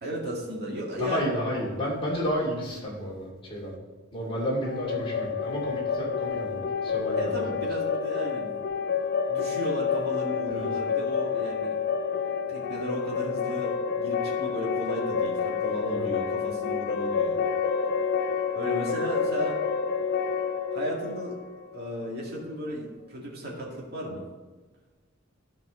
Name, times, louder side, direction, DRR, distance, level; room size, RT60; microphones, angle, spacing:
voice 1, 0.0-1.3 7.2-8.5 9.3-11.8 12.2-17.4 18.5-19.5 20.7-21.3 21.7-24.2, equal, 50° right, -3 dB, 2.2 m, -35 dB
voice 2, 1.0-3.7 4.1-7.5 10.5-10.7 15.8-16.1, equal, 25° left, -6 dB, 2.9 m, -31 dB
sound 1, 4.6-22.4, left 6 dB, 50° left, 0.4 m, -29 dB
12.5 x 5.4 x 3.9 m, 1.3 s
head